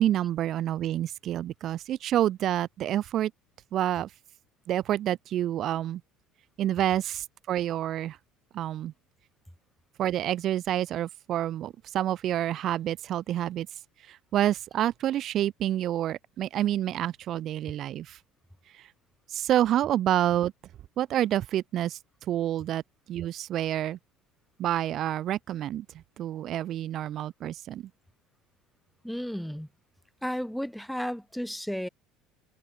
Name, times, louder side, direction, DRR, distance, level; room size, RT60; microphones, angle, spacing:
voice 1, 0.0-3.3 3.7-4.1 4.7-6.0 6.6-8.2 8.5-8.9 10.0-13.7 14.1-18.2 18.8-18.9 19.3-20.5 21.0-22.0 22.3-22.8 23.1-24.0 24.6-25.9 26.2-27.9, right 12 dB, 55° right, 0.3 m, -28 dB
voice 2, 29.0-29.7 30.2-31.9, equal, ahead, 0.7 m, -33 dB
hypercardioid pair, 80°, 0 cm